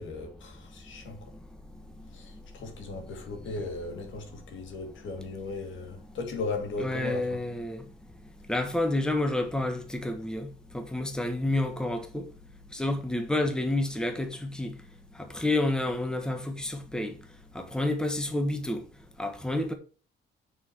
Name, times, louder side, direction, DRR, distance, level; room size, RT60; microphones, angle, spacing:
voice 1, 0.0-1.3 2.1-7.4, left 3 dB, 75° left, 2.3 m, -37 dB
voice 2, 0.9-2.5 4.3-4.4 6.8-7.9 8.5-12.3 12.7-17.3 17.5-18.9 19.2-19.7, left 1 dB, 5° left, 1.3 m, -30 dB
6.3 x 4.8 x 6.0 m
cardioid pair, 90°, 20 cm